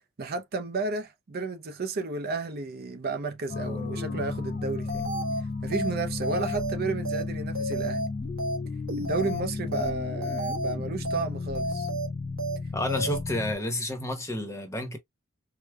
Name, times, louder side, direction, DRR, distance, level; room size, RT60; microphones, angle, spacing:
voice 1, 0.2-5.1 5.4-8.0 9.0-11.9, right 3 dB, 45° right, 0.5 m, -32 dB
sound 1, 3.5-13.5, left 3 dB, 35° left, 0.4 m, -33 dB
sound 2, 4.9-5.4 5.7-5.9 6.2-6.7 7.0-7.2 7.5-8.1 8.4-8.6 8.9-9.4 9.7-9.9 10.2-10.7 11.0-11.2 11.5-12.1 12.4-12.6 12.9-13.2, right 1 dB, 60° right, 1.1 m, -31 dB
voice 2, 12.7-15.0, left 1 dB, 15° left, 0.8 m, -30 dB
4.8 x 2.1 x 2.2 m
head